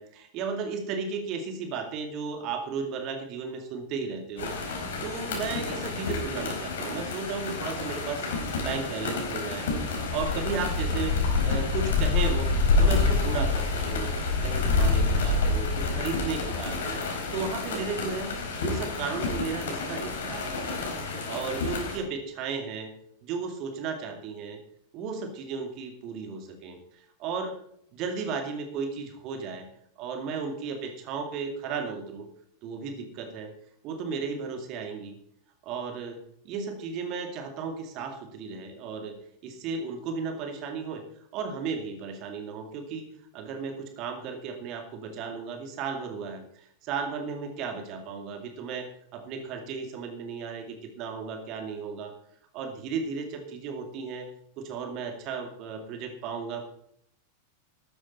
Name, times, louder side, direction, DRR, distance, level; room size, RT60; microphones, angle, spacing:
voice 1, 0.0-11.2 11.4-12.5 12.8-14.1 14.4-17.0 17.3-18.3 18.6-20.8 21.3-22.9 23.2-24.6 24.9-27.6 27.9-29.7 30.0-32.3 32.6-33.5 33.8-35.2 35.6-36.2 36.4-39.2 39.4-41.0 41.3-43.1 43.3-48.9 49.1-52.1 52.5-54.3 54.6-56.6, right 5 dB, 40° right, 5 dB, 2.3 m, -34 dB
sound 1, 4.4-22.0, left 3 dB, 60° left, 4.6 m, -28 dB
13.5 x 13.0 x 4.2 m, 0.67 s
figure-of-eight pair, 90°, 0 cm